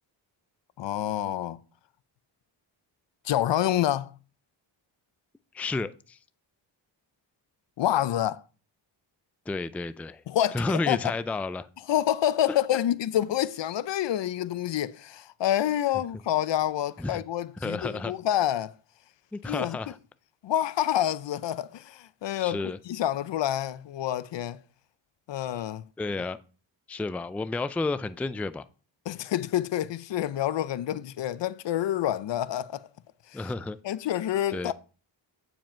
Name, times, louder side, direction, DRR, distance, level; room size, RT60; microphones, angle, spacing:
voice 1, 0.8-1.6 3.2-4.1 7.8-8.4 10.3-11.1 11.9-18.7 19.4-19.8 20.4-24.6 25.3-25.9 29.1-32.8 33.3-33.5 33.8-34.7, left 12 dB, 65° left, 0.6 m, -28 dB
voice 2, 5.5-6.2 9.5-10.2 10.5-11.7 12.5-12.6 17.0-17.2 17.6-18.1 19.3-20.0 22.4-22.8 26.0-26.4 26.9-28.7 33.3-33.8 34.5-34.7, left 3 dB, 5° left, 0.4 m, -31 dB
9.2 x 5.2 x 4.4 m
cardioid pair, 70°, 47 cm